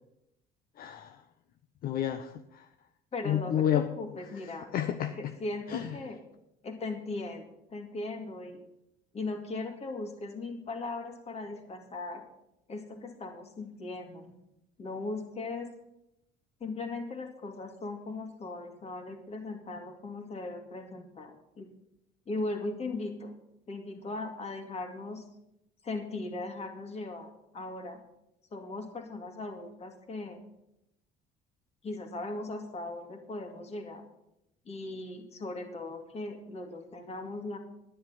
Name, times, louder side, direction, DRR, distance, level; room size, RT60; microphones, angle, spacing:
voice 1, 0.8-1.2 1.8-2.6 3.2-3.9 4.7-5.1 5.7-6.0, left 10 dB, 60° left, 8 dB, 0.7 m, -30 dB
voice 2, 3.1-4.7 5.1-6.2 6.6-8.6 9.1-12.3 12.7-14.3 14.8-15.7 16.6-21.7 22.3-23.3 23.7-25.2 25.8-28.0 28.5-30.4 31.8-34.0 34.7-37.6, left 2 dB, 40° left, 4 dB, 2.3 m, -38 dB
10.0 x 10.0 x 5.7 m, 0.84 s
cardioid pair, 110°, 17 cm